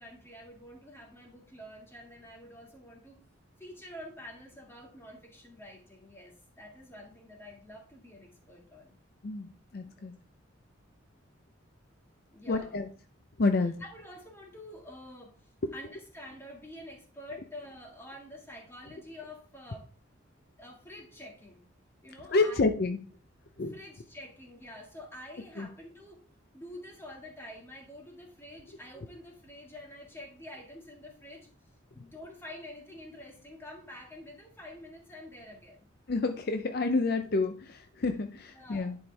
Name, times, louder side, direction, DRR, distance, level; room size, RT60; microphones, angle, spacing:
voice 1, 0.0-3.2 3.6-9.0 10.0-10.1 12.3-12.8 13.6-15.3 15.7-19.9 20.6-21.6 22.0-22.6 23.6-26.2 26.5-31.5 31.9-35.9 38.5-39.0, left 1 dB, 10° left, 0 dB, 1.8 m, -48 dB
voice 2, 9.7-10.1 12.5-12.9 13.4-13.7 22.3-23.0 23.6-23.7 25.6-25.7 36.1-39.0, left 3 dB, 50° left, 7 dB, 0.5 m, -28 dB
11.0 x 4.4 x 3.3 m, 0.40 s
head